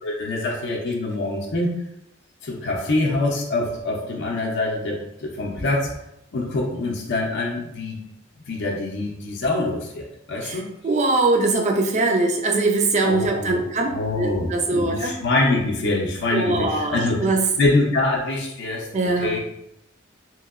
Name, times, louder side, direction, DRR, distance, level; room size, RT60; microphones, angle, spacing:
voice 1, 0.0-1.7 2.4-5.9 6.3-8.0 8.5-10.7 13.0-17.3 17.6-18.9 19.2-19.4, left 2 dB, 60° left, -1 dB, 0.5 m, -25 dB
voice 2, 10.4-13.9 14.2-15.1 16.3-17.4 18.9-19.4, right 2 dB, 35° right, 2 dB, 0.4 m, -22 dB
2.9 x 2.7 x 2.4 m, 0.79 s
head